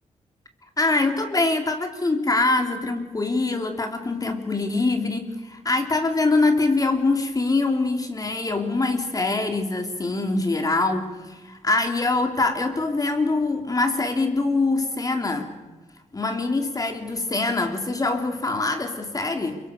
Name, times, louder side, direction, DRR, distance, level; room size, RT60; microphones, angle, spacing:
voice 1, 0.8-15.5 16.1-19.6, left 3 dB, 30° left, 5 dB, 3.5 m, -24 dB
28.5 x 24.0 x 6.9 m, 1.1 s
cardioid pair, 100°, 13 cm